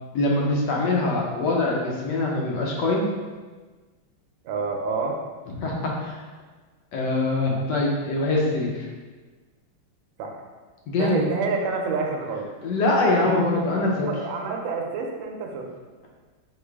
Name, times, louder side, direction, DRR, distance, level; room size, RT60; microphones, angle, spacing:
voice 1, 0.1-3.1 5.6-6.2 6.9-8.9 10.9-11.2 12.6-14.1, left 2 dB, 70° left, -2 dB, 1.2 m, -23 dB
voice 2, 4.4-5.2 10.2-10.4 11.0-12.5 13.1-15.7, right 4 dB, 90° right, 1 dB, 1.4 m, -28 dB
3.8 x 3.1 x 3.4 m, 1.3 s
omnidirectional pair, 2.1 m